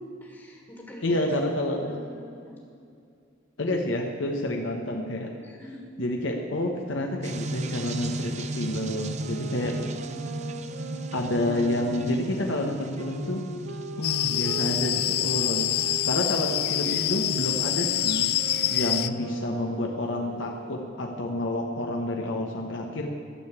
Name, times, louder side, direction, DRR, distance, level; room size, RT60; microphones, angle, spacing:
voice 1, 0.0-1.3 1.8-2.6 5.4-5.8 9.6-9.9, equal, 15° left, -1 dB, 1.7 m, -44 dB
voice 2, 1.0-1.9 3.6-5.3 6.0-9.7 11.1-13.5 14.0-15.7 16.0-18.3 18.7-23.1, left 1 dB, 85° left, 1 dB, 1.1 m, -29 dB
sound 1, 7.2-19.4, right 2 dB, 35° right, 0.6 m, -37 dB
sound 2, 9.1-14.7 15.3-20.9, right 2 dB, 65° right, 1.1 m, -40 dB
sound 3, 14.0-19.1, left 13 dB, 55° left, 0.4 m, -26 dB
13.0 x 6.8 x 8.3 m, 2.4 s
head